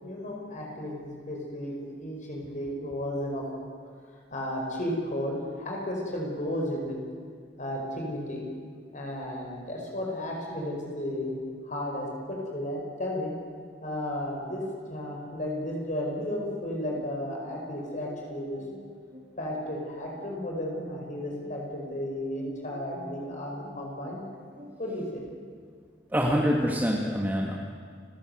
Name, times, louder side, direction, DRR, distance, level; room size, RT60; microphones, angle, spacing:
voice 1, 0.0-3.4 4.3-7.0 7.6-8.5 8.9-11.3 11.6-13.3 13.8-14.6 14.9-18.6 19.4-24.2 24.8-25.2, left 1 dB, 45° left, -1 dB, 5.2 m, -33 dB
sound 1, 16.4-25.1, equal, 40° right, 6.3 m, -49 dB
voice 2, 26.1-27.6, equal, 10° right, -2 dB, 2.0 m, -25 dB
30.0 x 17.0 x 8.0 m, 2.1 s
head